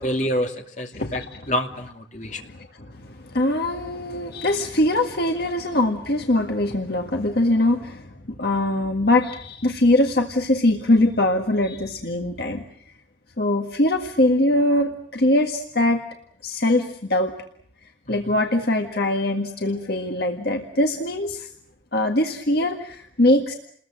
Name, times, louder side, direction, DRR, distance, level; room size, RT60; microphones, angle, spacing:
voice 1, 0.0-2.4 18.1-18.2, equal, 40° left, 3 dB, 2.7 m, -27 dB
voice 2, 0.9-1.5 2.3-8.1 8.4-12.6 13.4-16.0 16.4-17.3 18.1-21.5 21.9-23.5, left 1 dB, 55° left, 3 dB, 1.8 m, -22 dB
29.5 x 21.0 x 7.6 m, 0.65 s
head